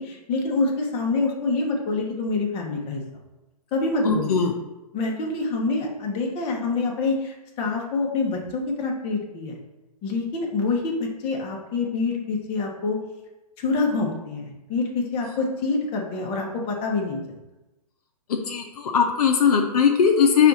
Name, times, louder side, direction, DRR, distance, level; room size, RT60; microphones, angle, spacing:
voice 1, 0.0-3.0 3.7-4.4 4.9-9.6 10.0-13.0 13.6-17.2, left 3 dB, 25° left, 0 dB, 0.9 m, -26 dB
voice 2, 4.0-4.5 18.3-20.5, left 6 dB, 65° left, 3 dB, 0.6 m, -19 dB
5.5 x 2.5 x 3.9 m, 1.0 s
hypercardioid pair, 130°, 21 cm